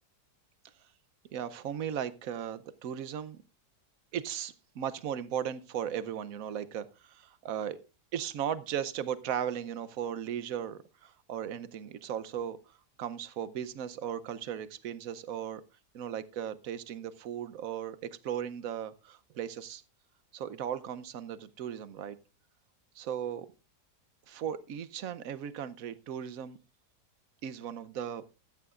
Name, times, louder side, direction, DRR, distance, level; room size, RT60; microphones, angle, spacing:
voice 1, 1.3-3.4 4.1-7.8 8.1-12.6 13.0-15.6 15.9-18.0 18.2-19.8 20.3-22.2 23.0-23.5 24.3-26.6 27.4-28.2, right 9 dB, 60° right, 15 dB, 1.1 m, -37 dB
13.5 x 13.0 x 2.4 m, 0.30 s
omnidirectional pair, 1.8 m